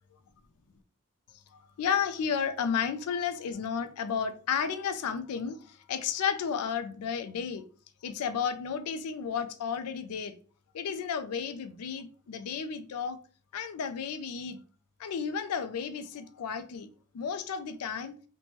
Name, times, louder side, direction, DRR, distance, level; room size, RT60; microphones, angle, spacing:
voice 1, 1.5-7.6 8.0-10.3 10.7-13.2 13.5-14.6 15.0-16.9 17.1-18.1, left 7 dB, 80° left, 10 dB, 0.4 m, -32 dB
2.9 x 2.2 x 2.9 m, 0.40 s
head